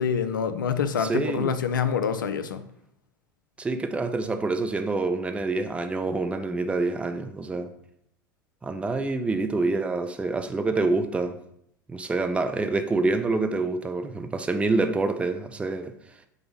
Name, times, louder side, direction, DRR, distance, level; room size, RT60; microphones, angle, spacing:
voice 1, 0.0-2.6, left 6 dB, 80° left, 0.4 m, -26 dB
voice 2, 1.0-1.6 3.6-7.7 8.6-11.4 11.9-15.9, right 3 dB, 10° right, 0.4 m, -27 dB
5.1 x 2.0 x 4.6 m
figure-of-eight pair, 80°, 11 cm